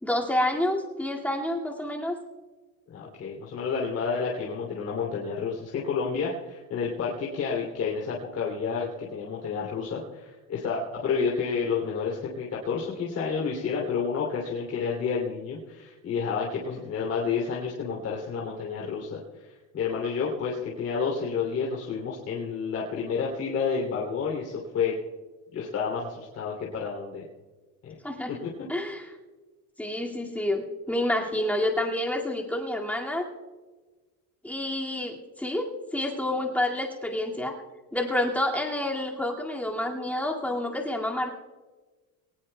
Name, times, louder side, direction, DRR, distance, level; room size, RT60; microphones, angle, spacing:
voice 1, 0.0-2.2 28.0-28.3 28.7-29.1 29.8-33.2 34.4-37.6 37.9-41.3, left 1 dB, 5° left, -1 dB, 2.2 m, -28 dB
voice 2, 2.9-24.9 25.5-27.2 27.8-27.9 28.3-28.4, left 5 dB, 40° left, -3 dB, 3.0 m, -30 dB
22.5 x 19.0 x 2.3 m, 1.3 s
cardioid pair, 145°, 36 cm